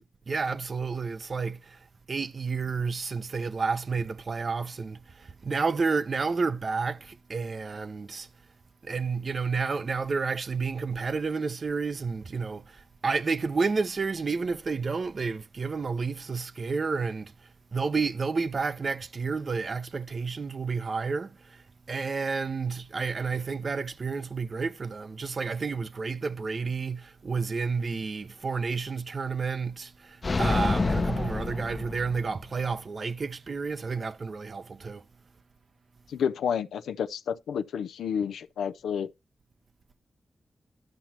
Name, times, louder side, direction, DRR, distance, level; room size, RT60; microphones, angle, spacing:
voice 1, 0.3-8.3 8.8-35.0, right 4 dB, 55° right, 0.8 m, -30 dB
sound 1, 30.2-32.4, left 3 dB, 45° left, 0.8 m, -27 dB
voice 2, 36.1-39.1, left 7 dB, 90° left, 0.5 m, -30 dB
11.5 x 5.9 x 4.3 m
supercardioid pair, 40°, 0 cm